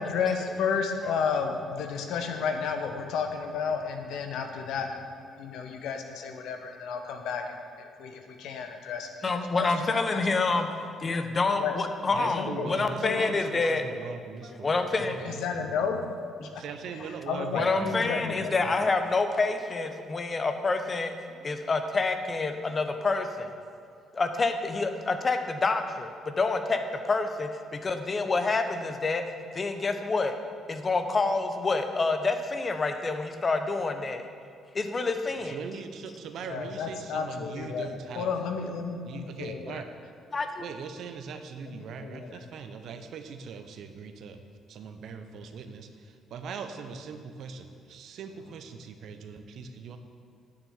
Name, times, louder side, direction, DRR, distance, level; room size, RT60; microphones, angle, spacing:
voice 1, 0.0-9.3 9.6-10.8 11.5-11.8 12.3-13.6 15.2-16.0 16.4-16.6 16.9-18.7 36.4-39.8 40.3-40.4 41.7-42.5, left 6 dB, 65° left, 5 dB, 1.1 m, -33 dB
voice 2, 9.2-10.7 11.0-13.8 14.4-15.2 16.4-16.5 17.5-23.6 24.1-29.2 29.5-30.4 30.7-34.3 34.7-35.6 40.3-40.6, left 3 dB, 35° left, 7 dB, 1.1 m, -28 dB
voice 3, 12.1-15.6 16.5-18.7 35.5-38.3 39.0-39.9 40.6-44.4 44.7-50.0, right 5 dB, 60° right, 8 dB, 0.8 m, -41 dB
9.4 x 7.2 x 7.2 m, 2.4 s
hypercardioid pair, 45°, 0 cm